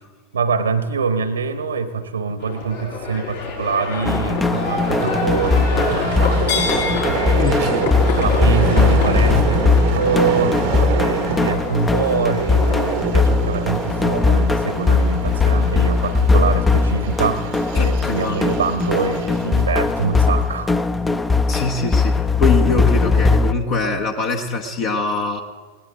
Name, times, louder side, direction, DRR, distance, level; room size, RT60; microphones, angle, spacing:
voice 1, 0.3-6.5 7.1-7.9 8.2-10.6 10.9-17.4 17.7-20.7, right 5 dB, 75° right, 11 dB, 1.1 m, -24 dB
Livestock farm animals working animals, 2.4-18.9, left 4 dB, 65° left, 5.9 m, -28 dB
sound 1, 4.1-23.5, left 4 dB, 10° left, 0.7 m, -19 dB
Vehicle, 4.2-20.6, right 10 dB, 50° right, 0.9 m, -28 dB
voice 2, 7.4-8.0 17.7-18.6 21.5-25.4, left 3 dB, 45° left, 3 dB, 1.3 m, -23 dB
20.0 x 18.0 x 3.7 m, 1.5 s
figure-of-eight pair, 90°, 0 cm